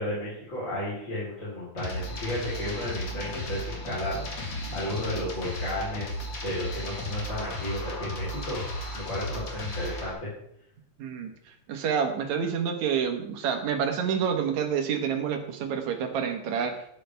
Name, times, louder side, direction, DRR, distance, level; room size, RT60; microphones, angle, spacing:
voice 1, 0.0-8.6 8.9-10.3, left 1 dB, 25° left, -9 dB, 3.9 m, -33 dB
sound 1, 1.8-10.1, left 1 dB, 40° left, 2.3 m, -35 dB
voice 2, 11.0-11.3 11.7-16.8, right 7 dB, 70° right, 5 dB, 2.5 m, -28 dB
12.5 x 10.0 x 3.4 m, 0.73 s
omnidirectional pair, 3.6 m